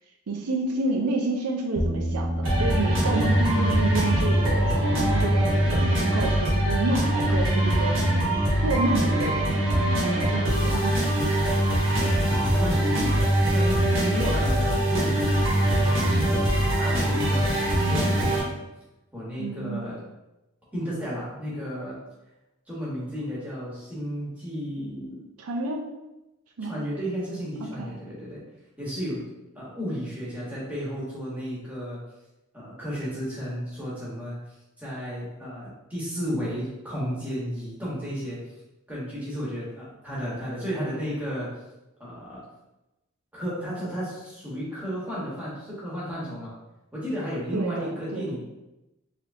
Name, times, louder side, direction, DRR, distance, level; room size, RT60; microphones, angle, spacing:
voice 1, 0.3-8.0 8.6-9.6 10.0-11.1 12.0-12.1 19.4-19.9 25.4-25.9 26.6-26.8 27.6-28.0 47.5-48.4, right 2 dB, 85° right, 1 dB, 0.5 m, -29 dB
sound 1, 1.8-14.1, equal, 10° left, 0.5 m, -35 dB
sound 2, 2.4-18.4, right 1 dB, 60° right, 1.0 m, -23 dB
voice 2, 12.2-17.6 17.8-18.6 19.1-20.0 20.7-22.0 22.7-25.2 26.6-28.4 28.8-29.2 29.5-32.0 32.5-34.4 34.8-38.4 38.9-41.5 42.0-42.4 43.3-46.5 46.9-48.4, equal, 5° right, -7 dB, 1.0 m, -33 dB
3.3 x 2.8 x 2.5 m, 0.98 s
head